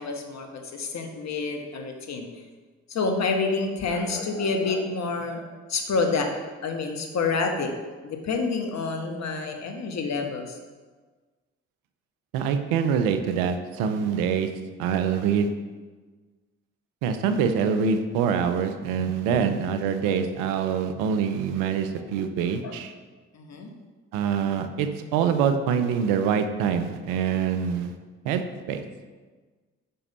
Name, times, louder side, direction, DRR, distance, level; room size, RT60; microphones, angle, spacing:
voice 1, 0.0-2.3 2.9-5.4 5.7-6.3 6.6-7.7 8.0-10.6 14.0-14.1 19.3-19.4 22.6-22.7 23.3-23.7, left 4 dB, 60° left, 4 dB, 1.2 m, -28 dB
voice 2, 12.3-14.5 14.8-15.5 17.0-22.9 24.1-27.9 28.2-28.4 28.7-28.8, right 7 dB, 85° right, 8 dB, 0.6 m, -25 dB
5.5 x 5.3 x 5.5 m, 1.4 s
hypercardioid pair, 40°, 31 cm